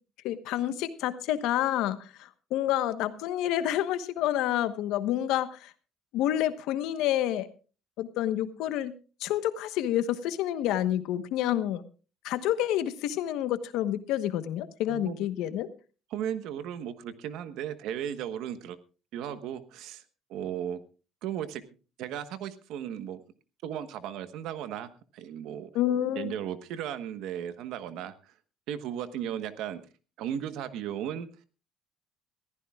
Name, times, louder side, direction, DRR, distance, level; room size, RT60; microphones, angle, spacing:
voice 1, 0.2-5.7 6.1-7.5 8.0-8.9 9.2-11.8 12.2-15.7 25.7-26.3, left 12 dB, 70° left, 11 dB, 1.1 m, -28 dB
voice 2, 14.9-15.2 16.1-18.8 19.1-20.0 20.3-20.8 21.2-21.6 22.0-23.2 23.6-25.7 26.1-28.3 28.7-29.8 30.2-31.3, right 9 dB, 65° right, 11 dB, 1.2 m, -35 dB
22.0 x 14.5 x 2.4 m, 0.35 s
cardioid pair, 175°, 0 cm